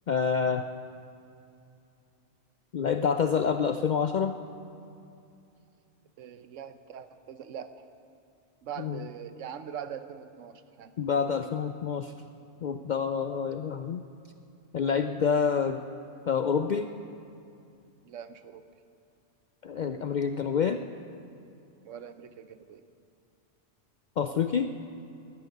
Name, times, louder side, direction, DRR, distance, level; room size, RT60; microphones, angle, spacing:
voice 1, 0.1-0.6 2.7-4.4 8.8-9.0 11.0-12.1 12.6-14.0 14.7-15.8 16.3-16.9 19.6-20.8 24.2-24.7, left 6 dB, 65° left, 8 dB, 0.4 m, -27 dB
voice 2, 6.2-7.8 8.6-10.9 18.0-18.6 21.8-22.8, right 8 dB, 80° right, 10 dB, 1.1 m, -42 dB
11.5 x 10.5 x 9.3 m, 2.6 s
omnidirectional pair, 1.3 m